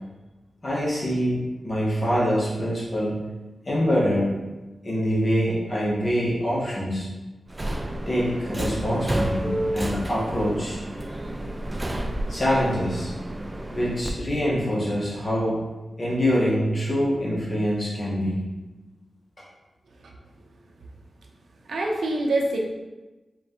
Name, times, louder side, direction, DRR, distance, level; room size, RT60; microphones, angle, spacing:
voice 1, 0.6-3.3 3.6-4.4 4.8-7.1 8.1-10.8 12.3-13.1 13.7-15.6 16.0-18.4 19.4-19.5, equal, 40° left, -6 dB, 1.4 m, -25 dB
Subway metro underground, 7.5-14.1, right 1 dB, 25° right, 0.4 m, -30 dB
voice 2, 21.6-22.6, right 2 dB, 90° right, 0 dB, 0.6 m, -25 dB
4.4 x 3.2 x 2.9 m, 1.1 s
cardioid pair, 70°, 0 cm